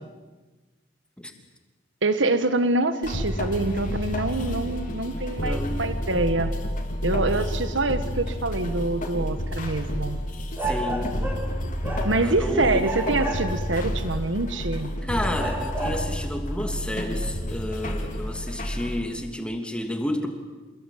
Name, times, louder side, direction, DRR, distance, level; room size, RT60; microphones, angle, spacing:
voice 1, 2.0-6.5 7.0-10.2 12.0-14.9, right 2 dB, 80° right, 11 dB, 1.5 m, -25 dB
sound 1, 3.0-19.0, equal, 45° left, 3.5 m, -30 dB
voice 2, 5.4-5.9 10.6-11.1 12.2-12.9 15.0-20.3, left 1 dB, 5° left, 4 dB, 3.0 m, -31 dB
sound 2, 9.1-9.2 10.5-11.6 11.8-12.4 12.8-13.8 14.5-14.6 15.4-16.2, right 2 dB, 10° right, 5.4 m, -31 dB
28.0 x 21.5 x 9.2 m, 1.3 s
head